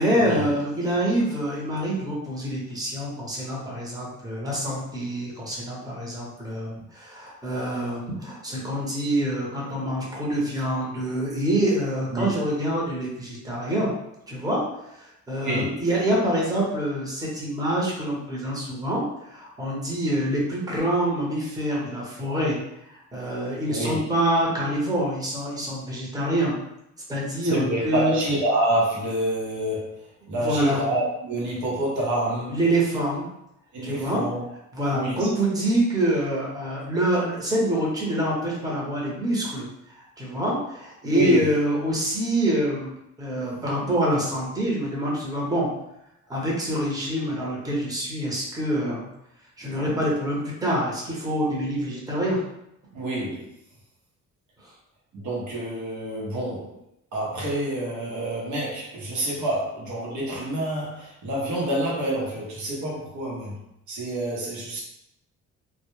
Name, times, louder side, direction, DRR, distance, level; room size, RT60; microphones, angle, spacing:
voice 1, 0.0-13.9 14.3-14.6 14.9-19.0 19.3-22.6 22.9-26.5 27.1-28.2 30.4-30.8 32.5-33.3 33.8-34.2 34.7-39.7 39.9-42.9 43.2-45.7 46.3-49.1 49.6-52.4, right 1 dB, 10° right, -4 dB, 0.8 m, -26 dB
voice 2, 15.4-15.8 23.7-24.0 27.5-32.6 33.7-34.4 34.9-35.3 41.1-41.4 52.9-53.5 55.1-56.8 57.1-63.6 63.9-64.8, right 1 dB, 75° right, -4 dB, 0.8 m, -27 dB
2.2 x 2.1 x 3.1 m, 0.81 s
cardioid pair, 90°, 30 cm